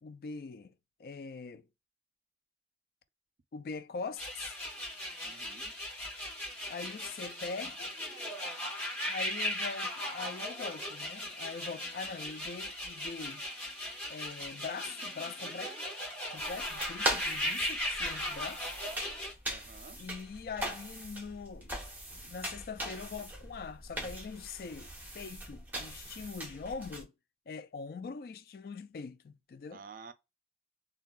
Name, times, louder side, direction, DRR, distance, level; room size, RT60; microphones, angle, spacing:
voice 1, 0.0-0.7 1.0-1.7 3.5-4.6 6.7-8.0 9.1-13.4 14.1-15.8 16.3-18.8 20.0-21.8 22.1-24.9 25.1-27.1 27.5-29.8, left 4 dB, 55° left, 0.3 m, -42 dB
sound 1, 4.2-19.3, left 1 dB, 10° left, 1.1 m, -38 dB
voice 2, 5.3-5.7 12.0-12.2 19.5-20.0 29.7-30.1, right 5 dB, 50° right, 0.4 m, -51 dB
sound 2, 16.4-27.0, right 1 dB, 10° right, 0.8 m, -40 dB
3.5 x 2.2 x 2.3 m
head